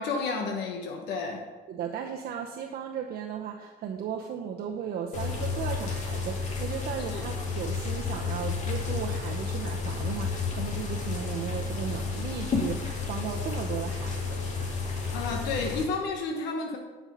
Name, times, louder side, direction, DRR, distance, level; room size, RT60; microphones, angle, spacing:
voice 1, 0.0-1.4 7.1-7.2 15.1-16.8, left 4 dB, 80° left, 1 dB, 1.3 m, -31 dB
voice 2, 1.7-14.4, right 7 dB, 65° right, 1 dB, 0.8 m, -36 dB
sound 1, 5.1-15.8, left 4 dB, 45° left, 2.0 m, -31 dB
10.5 x 5.4 x 5.3 m, 1.3 s
cardioid pair, 110°, 17 cm